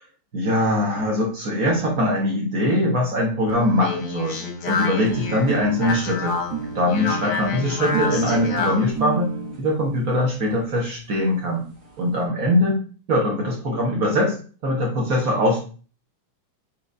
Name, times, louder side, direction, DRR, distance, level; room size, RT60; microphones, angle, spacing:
voice 1, 0.3-6.4 6.7-9.3 9.6-11.6 12.0-12.8 13.1-14.4 14.6-15.6, left 1 dB, 60° right, -1 dB, 0.9 m, -22 dB
Speech, 3.5-8.9, left 4 dB, 60° left, 1.1 m, -28 dB
sound 1, 5.0-9.6 10.5-10.6 10.8-10.9 11.1-11.2 11.4-12.1, right 4 dB, 85° right, 0.7 m, -32 dB
7.8 x 5.2 x 2.7 m, 0.39 s
omnidirectional pair, 3.7 m